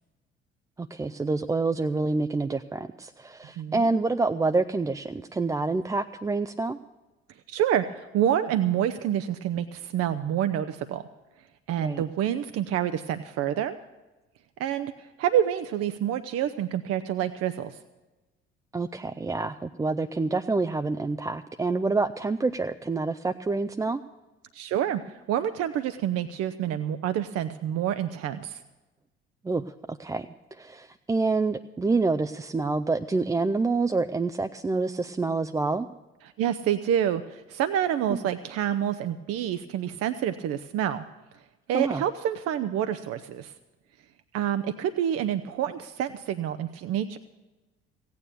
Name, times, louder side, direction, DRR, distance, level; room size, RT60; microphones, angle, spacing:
voice 1, 0.8-6.8 11.8-12.0 18.7-24.0 29.4-30.3 30.6-35.9 38.1-38.2 41.7-42.0, right 3 dB, 10° right, 8 dB, 0.4 m, -27 dB
voice 2, 7.5-11.0 11.7-13.8 14.6-17.8 24.5-25.0 25.3-28.6 36.4-41.0 41.7-43.5 44.3-47.2, right 10 dB, 50° right, 9 dB, 0.6 m, -27 dB
15.5 x 9.3 x 6.8 m, 1.1 s
figure-of-eight pair, 50°, 31 cm